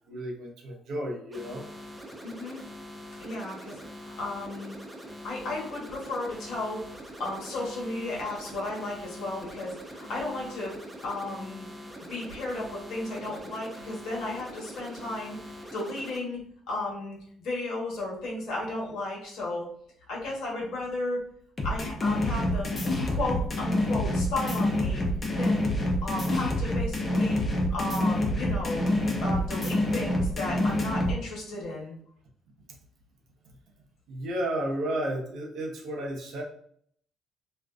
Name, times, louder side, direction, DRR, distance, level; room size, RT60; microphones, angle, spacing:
voice 1, 0.1-1.7 34.1-36.4, right 1 dB, 65° right, 1 dB, 0.6 m, -32 dB
sound 1, 1.3-16.2, equal, 10° right, 0.6 m, -44 dB
voice 2, 2.2-2.6 3.2-4.7 5.2-6.9 7.2-11.6 12.1-16.4 16.7-19.7 20.1-21.2 21.6-22.8 23.1-25.0 25.4-25.6 26.0-27.4 27.7-28.9 29.2-32.0, left 2 dB, 70° left, -3 dB, 1.1 m, -34 dB
sound 2, 21.6-31.1, left 1 dB, 35° left, 0.7 m, -27 dB
2.4 x 2.3 x 2.3 m, 0.63 s
hypercardioid pair, 55°, 0 cm